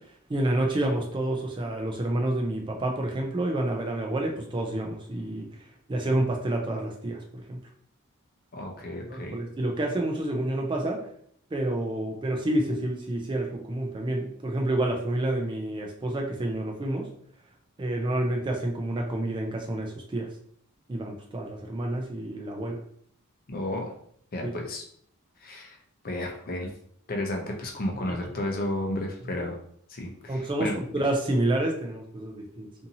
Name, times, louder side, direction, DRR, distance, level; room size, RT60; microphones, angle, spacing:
voice 1, 0.3-5.5 5.9-7.6 9.1-11.0 11.5-17.1 17.8-20.3 20.9-22.8 24.4-24.5 29.3-29.5 30.3-32.9, right 1 dB, 20° right, 1 dB, 0.3 m, -29 dB
voice 2, 8.5-9.3 23.5-23.9 24.3-24.8 25.4-25.8 26.0-26.7 27.1-29.6 29.9-30.7, left 1 dB, 40° left, 1 dB, 0.6 m, -32 dB
2.7 x 2.6 x 2.6 m, 0.63 s
head